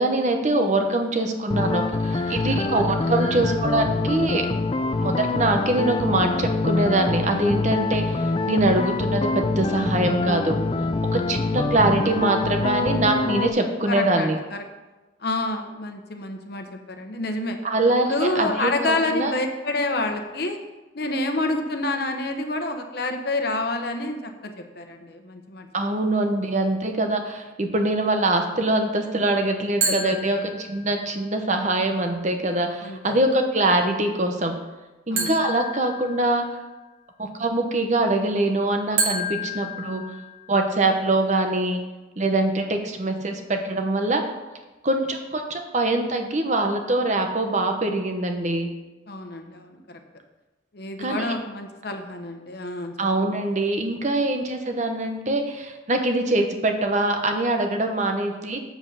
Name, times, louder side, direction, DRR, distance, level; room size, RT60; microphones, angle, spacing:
voice 1, 0.0-4.4 5.0-10.6 11.1-14.4 17.6-19.3 25.7-34.6 35.1-36.5 37.2-40.0 40.5-41.8 42.2-44.2 44.8-48.7 51.0-51.3 53.0-58.6, right 2 dB, 40° right, 4 dB, 0.9 m, -23 dB
sound 1, 1.5-13.5, left 3 dB, 30° left, 0.4 m, -25 dB
voice 2, 13.9-14.6 15.2-17.6 18.1-20.6 20.9-25.7 29.8-30.2 32.8-33.2 35.1-35.3 49.1-50.0 50.7-53.1, left 2 dB, 55° left, 5 dB, 1.0 m, -28 dB
sound 2, 29.8-31.1 35.2-36.7 39.0-40.7, right 2 dB, 80° right, 2.4 m, -29 dB
7.6 x 7.3 x 5.6 m, 1.1 s
head